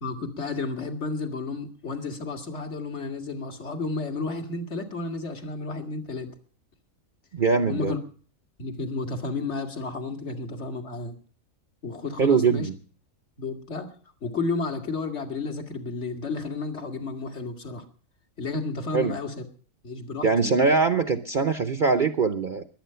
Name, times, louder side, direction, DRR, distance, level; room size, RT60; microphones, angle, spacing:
voice 1, 0.0-6.3 7.7-8.0 8.6-11.2 11.8-12.7 13.4-13.9 14.2-17.9 18.4-19.4 19.8-20.5, left 3 dB, 55° left, 5 dB, 2.3 m, -32 dB
voice 2, 7.3-7.9 12.2-12.7 18.9-19.1 20.2-22.6, right 5 dB, 45° right, 9 dB, 0.8 m, -22 dB
22.5 x 8.8 x 5.6 m, 0.43 s
omnidirectional pair, 1.4 m